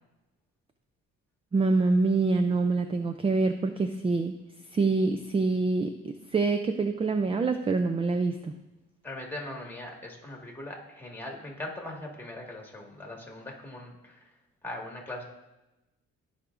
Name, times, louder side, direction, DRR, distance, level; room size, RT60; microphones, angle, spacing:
voice 1, 1.5-4.3 4.7-8.5, right 3 dB, 20° right, 7 dB, 0.4 m, -26 dB
voice 2, 9.0-14.2 14.6-15.2, left 1 dB, 5° left, -1 dB, 1.7 m, -40 dB
14.5 x 4.9 x 2.5 m, 1.0 s
cardioid pair, 90°, 30 cm